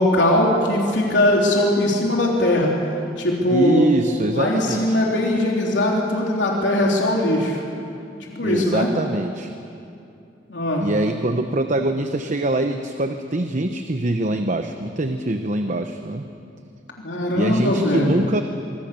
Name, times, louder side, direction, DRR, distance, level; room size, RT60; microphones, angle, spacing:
voice 1, 0.0-2.7 3.2-3.9 4.3-7.6 8.2-8.9 10.5-10.9 17.0-18.2, left 1 dB, 85° left, -2 dB, 3.5 m, -20 dB
voice 2, 3.5-5.0 8.4-9.5 10.8-16.2 17.3-18.4, right 1 dB, 45° right, 7 dB, 0.9 m, -23 dB
25.5 x 24.0 x 6.9 m, 2.6 s
head